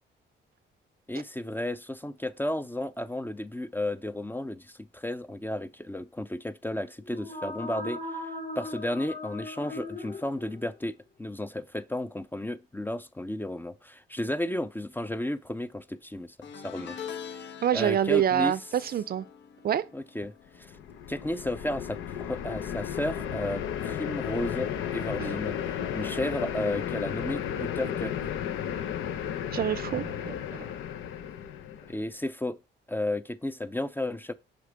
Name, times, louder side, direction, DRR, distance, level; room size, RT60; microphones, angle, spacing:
voice 1, 1.1-8.2 8.6-17.0 17.3-17.5 17.7-18.5 19.9-20.7 21.1-25.6 25.9-28.1 31.9-32.6 32.9-34.3, left 1 dB, 10° left, 0.5 m, -33 dB
sound 1, 7.0-10.8, left 1 dB, 45° left, 2.8 m, -38 dB
sound 2, 16.4-21.8 22.1-22.5 23.7-23.8, left 8 dB, 65° left, 1.2 m, -44 dB
voice 2, 17.6-19.3 19.6-19.9 25.2-25.4 29.5-30.7, right 10 dB, 50° right, 0.5 m, -27 dB
sound 3, 20.6-32.0, left 9 dB, 85° left, 0.8 m, -34 dB
6.6 x 4.9 x 5.1 m
cardioid pair, 90°, 20 cm